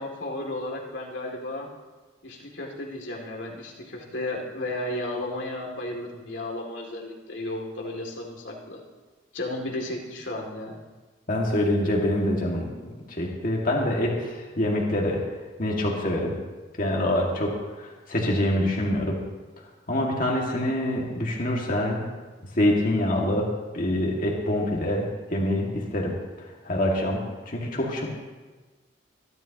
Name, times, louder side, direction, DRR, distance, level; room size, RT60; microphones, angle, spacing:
voice 1, 0.0-1.7 2.2-8.8 9.3-10.8, left 1 dB, 90° left, -1 dB, 2.5 m, -33 dB
voice 2, 11.3-15.2 15.6-16.3 16.8-17.5 17.8-19.2 19.9-22.0 22.6-26.1 26.6-27.2 27.5-28.1, left 1 dB, 50° left, -2 dB, 2.0 m, -25 dB
25.5 x 11.0 x 2.9 m, 1.3 s
head